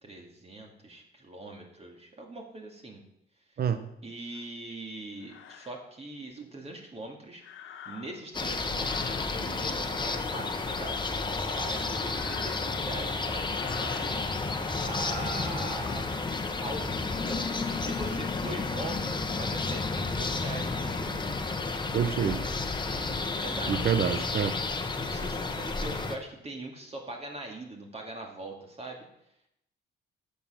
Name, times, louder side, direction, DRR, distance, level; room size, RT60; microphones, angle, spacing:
voice 1, 0.0-3.0 4.0-7.4 7.9-14.2 14.8-16.1 16.6-21.4 22.6-23.8 24.3-24.4 25.0-29.1, right 2 dB, 30° right, 1 dB, 2.4 m, -42 dB
sound 1, 4.3-4.5 5.2-5.7 7.4-8.3 8.8-9.4 11.6-13.0 13.4-14.1, left 8 dB, 80° left, 1.2 m, -46 dB
sound 2, 8.3-26.2, left 3 dB, 25° left, 1.3 m, -31 dB
voice 2, 21.9-22.5 23.7-24.5, right 7 dB, 50° right, 11 dB, 1.0 m, -27 dB
12.0 x 7.0 x 5.8 m, 0.78 s
cardioid pair, 90°, 20 cm